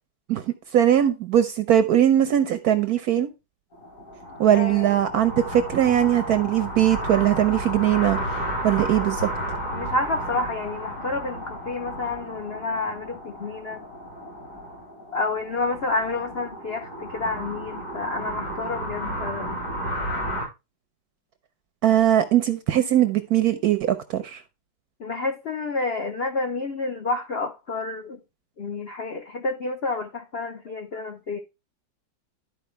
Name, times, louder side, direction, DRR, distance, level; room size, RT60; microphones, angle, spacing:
voice 1, 0.7-3.3 4.4-8.4 8.6-9.3 21.8-24.4, right 11 dB, 70° right, 0.9 m, -20 dB
sound 1, 3.7-20.4, equal, 55° left, 5.6 m, -33 dB
voice 2, 4.5-5.0 9.7-13.8 15.1-19.6 25.0-28.2 28.6-31.4, left 3 dB, 75° left, 0.5 m, -29 dB
12.0 x 4.6 x 3.2 m
omnidirectional pair, 2.1 m